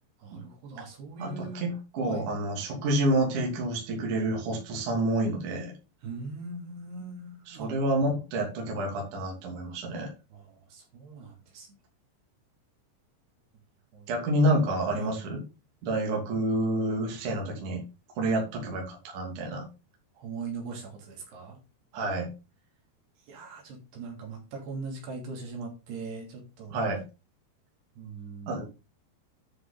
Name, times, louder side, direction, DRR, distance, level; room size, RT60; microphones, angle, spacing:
voice 1, 0.2-1.6 2.0-2.3 6.0-7.7 10.3-11.7 13.9-14.1 14.9-15.2 20.1-21.6 23.3-26.8 28.0-28.7, right 4 dB, 65° right, 0 dB, 4.9 m, -40 dB
voice 2, 1.2-5.7 7.5-10.1 14.1-15.4 15.8-17.8 18.2-19.7 21.9-22.3 26.7-27.0 28.5-28.7, right 1 dB, 50° right, 0 dB, 3.9 m, -28 dB
11.0 x 6.6 x 4.0 m, 0.29 s
omnidirectional pair, 5.3 m